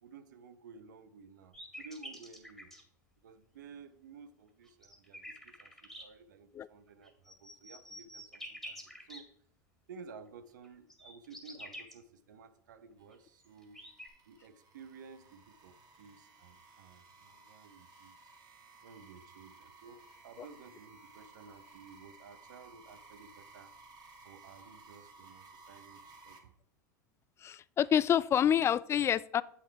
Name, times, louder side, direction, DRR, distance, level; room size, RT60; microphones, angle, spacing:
voice 1, 0.0-2.7 3.2-9.3 9.9-13.8 14.2-18.3 18.8-23.7 24.2-26.5, right 5 dB, 80° right, 12 dB, 0.8 m, -54 dB
sound 1, 1.5-2.8 4.6-6.0 7.0-9.2 10.6-11.9 13.1-13.2 13.4-14.1, equal, ahead, 2.1 m, -47 dB
sound 2, 13.0-26.4, right 3 dB, 40° right, 2.0 m, -57 dB
voice 2, 27.4-29.4, left 9 dB, 25° left, 19 dB, 0.3 m, -27 dB
8.1 x 6.1 x 4.6 m, 0.69 s
hypercardioid pair, 100°, 10 cm